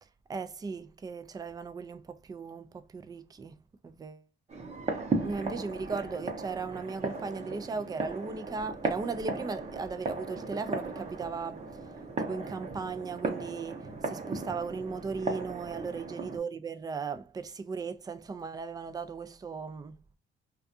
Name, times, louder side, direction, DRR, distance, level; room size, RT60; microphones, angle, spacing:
voice 1, 0.3-3.5 3.8-4.2 5.2-11.7 12.2-19.9, right 4 dB, 20° right, 0.3 m, -37 dB
sound 1, 4.5-16.4, right 3 dB, 35° right, 0.7 m, -36 dB
2.5 x 2.3 x 2.6 m
cardioid pair, 90°, 20 cm